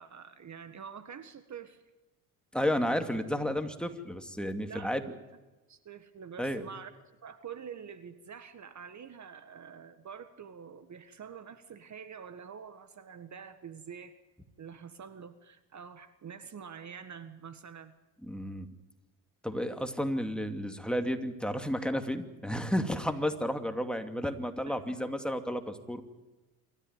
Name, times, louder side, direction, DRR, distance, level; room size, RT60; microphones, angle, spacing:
voice 1, 0.0-1.8 2.9-3.0 4.6-5.2 5.7-6.9 7.2-14.2 14.6-17.9 24.7-25.0, right 7 dB, 40° right, 11 dB, 1.7 m, -46 dB
voice 2, 2.5-5.0 6.4-6.6 18.2-18.7 19.4-26.0, equal, ahead, 6 dB, 2.5 m, -32 dB
27.0 x 14.0 x 9.6 m, 1.1 s
supercardioid pair, 75°, 43 cm